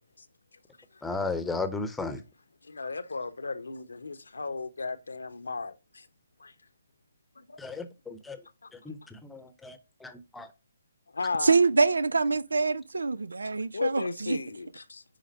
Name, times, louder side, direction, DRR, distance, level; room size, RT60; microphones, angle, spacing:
voice 1, 1.0-2.2 7.6-8.4 8.8-10.5, left 3 dB, 5° left, 1.0 m, -35 dB
voice 2, 2.6-6.1 6.4-6.5 7.4-7.6 8.6-8.7 9.0-9.1 11.1-11.6 13.7-15.0, left 4 dB, 70° left, 1.0 m, -35 dB
voice 3, 11.4-14.4, right 4 dB, 70° right, 0.5 m, -25 dB
10.0 x 3.7 x 5.3 m
figure-of-eight pair, 135°, 0 cm